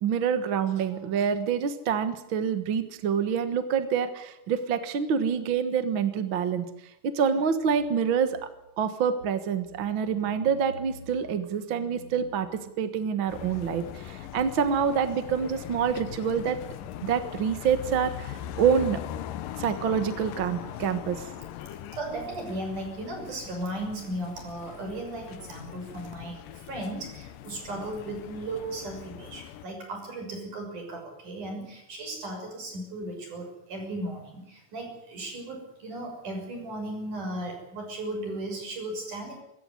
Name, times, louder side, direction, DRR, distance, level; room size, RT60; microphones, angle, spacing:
voice 1, 0.0-6.7 7.0-8.5 8.8-12.5 12.8-16.6 17.0-19.0 19.6-21.3, right 7 dB, 50° right, 10 dB, 1.7 m, -26 dB
sound 1, 13.3-29.7, left 11 dB, 85° left, 2.6 m, -41 dB
voice 2, 21.7-39.4, right 1 dB, 70° right, 3 dB, 7.9 m, -36 dB
25.0 x 14.0 x 9.8 m, 0.83 s
omnidirectional pair, 3.8 m